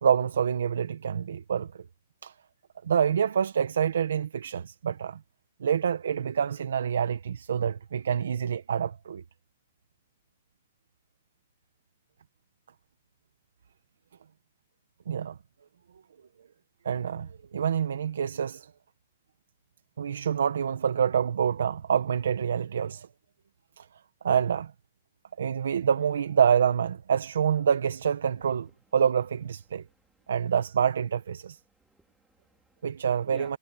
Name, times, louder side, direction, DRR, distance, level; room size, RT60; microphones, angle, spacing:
voice 1, 0.0-1.7 2.2-2.3 2.8-5.2 5.6-9.2 15.1-15.3 16.8-18.7 20.0-23.1 23.8-23.9 24.2-24.7 25.4-29.8 30.3-31.6 32.8-33.6, right 8 dB, 90° right, 1.0 m, -27 dB
voice 2, 29.7-30.3 31.6-33.6, right 2 dB, 5° right, 2.6 m, -55 dB
hypercardioid pair, 170°, 0 cm